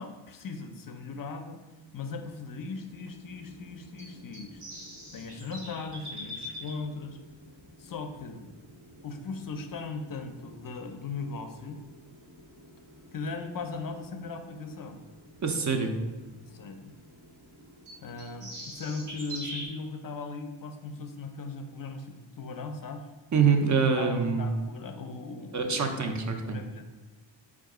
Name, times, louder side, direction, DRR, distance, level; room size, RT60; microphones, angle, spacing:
voice 1, 0.0-1.6 1.9-4.6 5.1-7.2 7.8-8.5 9.0-11.8 13.1-15.0 16.4-16.9 18.0-23.1 24.0-26.8, left 4 dB, 45° left, 6 dB, 0.5 m, -38 dB
sound 1, 1.9-19.7, equal, 90° right, 1.1 m, -47 dB
voice 2, 15.4-16.0 23.3-24.5 25.5-26.6, right 5 dB, 40° right, 5 dB, 0.5 m, -25 dB
4.6 x 2.4 x 4.7 m, 1.2 s
wide cardioid pair, 125°, 48 cm